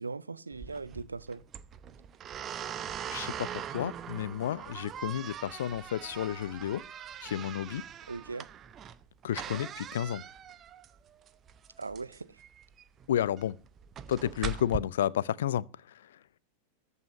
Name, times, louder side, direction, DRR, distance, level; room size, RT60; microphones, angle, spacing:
voice 1, 0.0-1.4 8.1-8.5 11.8-12.4, right 4 dB, 75° right, 0.7 m, -39 dB
sound 1, 0.5-14.8, right 8 dB, 30° right, 0.7 m, -42 dB
voice 2, 3.1-6.8 7.2-7.8 9.2-10.2 13.1-13.6 14.1-15.6, left 11 dB, 60° left, 0.5 m, -31 dB
14.0 x 5.6 x 8.0 m
figure-of-eight pair, 90°, 0 cm